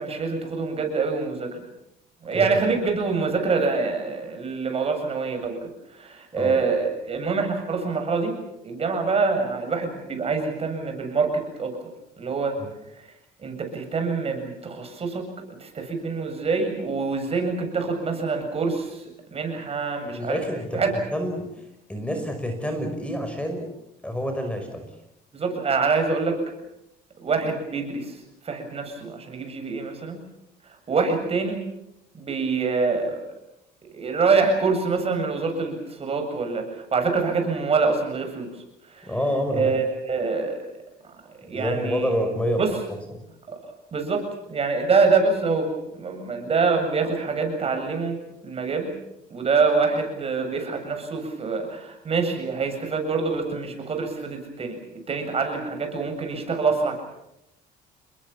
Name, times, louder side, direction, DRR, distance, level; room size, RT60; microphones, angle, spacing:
voice 1, 0.0-1.5 2.2-8.3 8.6-11.8 12.2-12.6 12.9-13.1 13.4-19.0 19.3-20.4 20.7-20.9 25.3-26.4 27.2-28.2 28.4-30.2 30.7-31.6 32.1-33.2 33.9-38.5 38.8-39.1 39.5-40.6 41.0-42.1 42.6-42.8 43.5-48.9 49.3-54.8 55.1-57.0, right 4 dB, 35° right, 5 dB, 7.6 m, -25 dB
voice 2, 20.1-20.8 21.1-23.7 24.0-24.9 39.0-39.7 41.5-42.6 43.1-43.2, equal, 5° left, 6 dB, 5.6 m, -28 dB
29.5 x 21.5 x 7.2 m, 0.83 s
cardioid pair, 110°, 17 cm